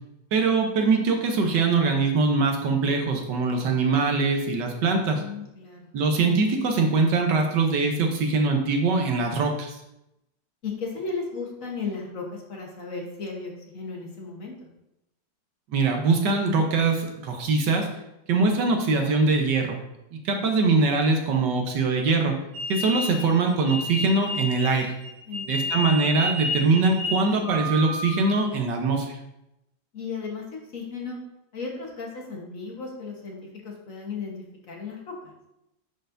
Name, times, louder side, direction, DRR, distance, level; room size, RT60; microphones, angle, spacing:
voice 1, 0.3-5.2 5.9-9.8 15.7-17.9 18.3-19.8 20.1-22.3 22.7-24.9 25.5-29.2, right 3 dB, 75° right, 3 dB, 1.5 m, -22 dB
voice 2, 5.1-5.9 10.6-14.6 25.3-25.9 29.9-30.5 30.7-31.2 31.5-33.4 33.6-34.4 34.6-35.3, left 4 dB, 50° left, -1 dB, 1.4 m, -35 dB
sound 1, 22.5-28.5, left 1 dB, 10° right, 1.9 m, -31 dB
10.0 x 4.2 x 2.6 m, 0.86 s
omnidirectional pair, 1.9 m